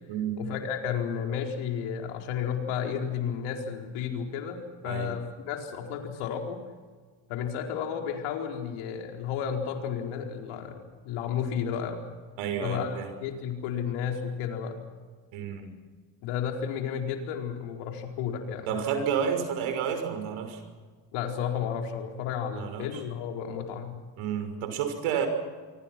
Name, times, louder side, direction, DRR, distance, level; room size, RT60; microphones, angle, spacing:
voice 1, 0.4-6.6 7.3-12.0 12.6-14.8 16.2-18.8 21.1-24.0, left 7 dB, 80° left, 3 dB, 4.6 m, -32 dB
voice 2, 12.4-13.1 15.3-15.7 18.7-20.6 22.5-23.0 24.2-25.3, right 8 dB, 75° right, 7 dB, 6.0 m, -30 dB
26.0 x 25.0 x 6.1 m, 1.5 s
supercardioid pair, 90°, 49 cm